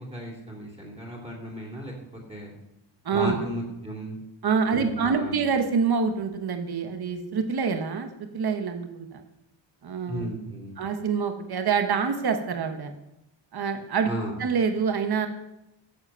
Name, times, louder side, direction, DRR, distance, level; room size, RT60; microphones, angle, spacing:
voice 1, 0.0-1.9 2.3-2.5 3.1-4.2 4.7-5.3 10.1-10.8 14.0-14.4, equal, 15° right, -2 dB, 2.6 m, -34 dB
voice 2, 3.0-3.4 4.4-9.2 9.8-10.3 10.8-12.9 13.5-14.1 14.4-15.3, right 5 dB, 55° right, 7 dB, 1.1 m, -26 dB
13.0 x 7.6 x 5.5 m, 0.88 s
wide cardioid pair, 180°, 46 cm